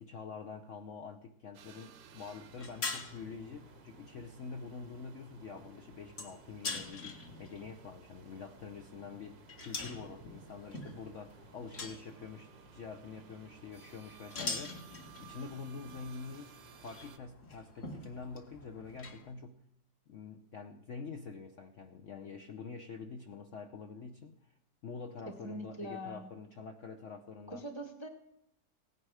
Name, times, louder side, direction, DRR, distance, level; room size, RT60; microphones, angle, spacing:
voice 1, 0.0-14.8 15.2-16.5 16.8-19.6 20.1-24.5 24.8-27.6, left 5 dB, 60° left, 5 dB, 0.8 m, -46 dB
sound 1, 1.5-17.2, right 8 dB, 75° right, 1.5 m, -58 dB
sound 2, 2.5-19.3, left 3 dB, 45° left, 1.6 m, -46 dB
voice 2, 25.3-26.3 27.5-28.1, equal, 20° right, 4 dB, 0.7 m, -43 dB
17.0 x 9.9 x 4.8 m, 0.77 s
omnidirectional pair, 2.0 m